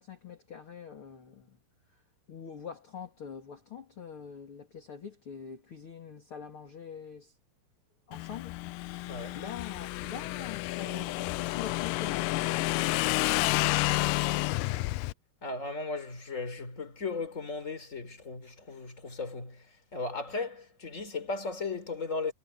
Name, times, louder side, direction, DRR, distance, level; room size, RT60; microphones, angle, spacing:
voice 1, 0.0-1.6 2.3-7.3 8.1-8.6 9.1-14.1, left 7 dB, 40° left, 3.2 m, -44 dB
Motorcycle / Engine, 8.1-15.1, left 20 dB, 85° left, 2.1 m, -30 dB
voice 2, 9.0-9.4 15.4-19.7 19.9-22.3, left 3 dB, 20° left, 4.1 m, -36 dB
omnidirectional pair, 3.9 m